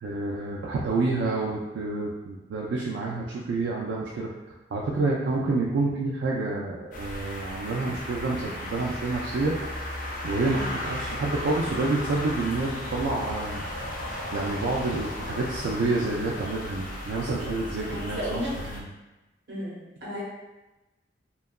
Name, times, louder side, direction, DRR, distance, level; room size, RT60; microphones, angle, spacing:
voice 1, 0.0-4.3 4.7-9.5 10.2-13.7 14.3-18.9, right 3 dB, 90° right, -3 dB, 0.3 m, -28 dB
sound 1, 6.9-18.8, left 1 dB, 45° left, 0.4 m, -35 dB
voice 2, 17.8-18.5 19.5-20.2, equal, 70° right, -6 dB, 0.9 m, -34 dB
2.7 x 2.3 x 2.2 m, 1.1 s
head